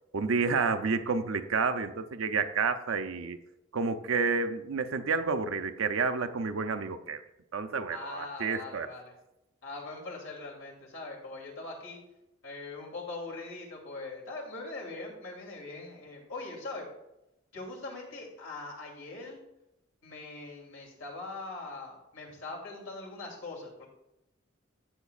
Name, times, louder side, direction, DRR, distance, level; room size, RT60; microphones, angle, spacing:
voice 1, 0.1-3.4 3.7-7.2 7.5-8.9, right 4 dB, 90° right, 8 dB, 0.6 m, -30 dB
voice 2, 7.9-9.1 9.6-12.0 12.4-16.9 17.5-19.4 20.0-23.9, left 3 dB, 80° left, -1 dB, 2.8 m, -41 dB
15.0 x 7.1 x 2.4 m, 0.90 s
head